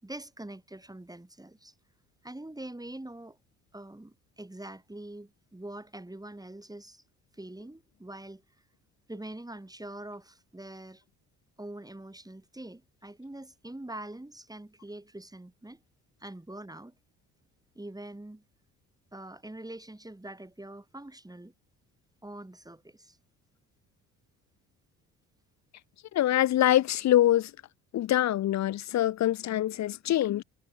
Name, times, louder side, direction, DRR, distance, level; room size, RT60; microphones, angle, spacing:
voice 1, 0.0-1.7 2.2-3.4 3.7-7.0 7.3-8.4 9.1-11.0 11.6-15.8 16.2-16.9 17.8-18.4 19.1-21.5 22.2-23.2, right 1 dB, 10° right, 7.0 m, -44 dB
voice 2, 26.1-27.5 27.9-30.4, left 13 dB, 40° left, 0.8 m, -24 dB
figure-of-eight pair, 50°, 44 cm